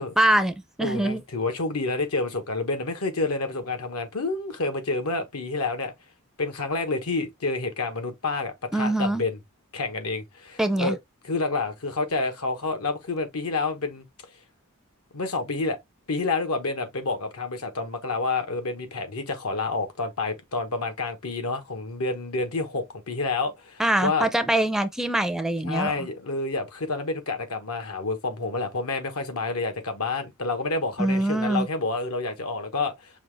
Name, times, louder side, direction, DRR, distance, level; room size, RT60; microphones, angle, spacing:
voice 1, 0.0-1.2 8.7-9.2 10.6-11.0 23.8-25.9 31.0-31.7, right 1 dB, ahead, 0.4 m, -24 dB
voice 2, 0.8-5.9 6.4-9.4 9.7-11.0 11.2-14.1 15.1-15.8 16.1-24.3 25.6-32.9, left 3 dB, 80° left, 1.1 m, -29 dB
5.6 x 2.4 x 3.3 m
head